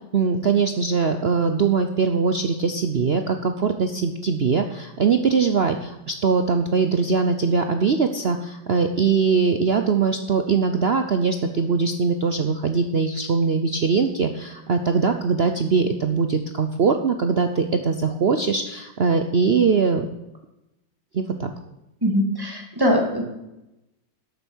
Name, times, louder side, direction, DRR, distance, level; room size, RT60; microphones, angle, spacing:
voice 1, 0.1-20.1 21.1-21.5, right 5 dB, 70° right, 6 dB, 0.6 m, -21 dB
voice 2, 22.0-23.2, equal, 10° right, 1 dB, 2.4 m, -21 dB
12.5 x 8.2 x 6.2 m, 0.93 s
omnidirectional pair, 2.1 m